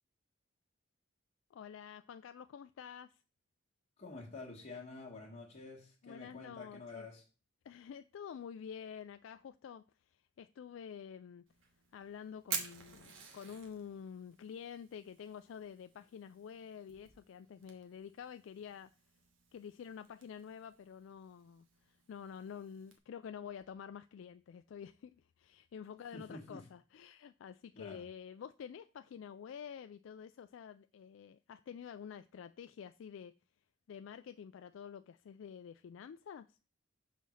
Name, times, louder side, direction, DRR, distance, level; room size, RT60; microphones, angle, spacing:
voice 1, 1.5-3.2 6.0-7.1 7.6-11.4 11.9-18.9 19.5-33.3 33.9-36.6, left 7 dB, 75° left, 0.3 m, -49 dB
voice 2, 4.0-7.2 26.1-26.7 27.7-28.0, left 3 dB, 40° left, 1.4 m, -49 dB
Fire, 11.5-23.0, right 6 dB, 80° right, 1.3 m, -50 dB
5.7 x 4.1 x 6.2 m
head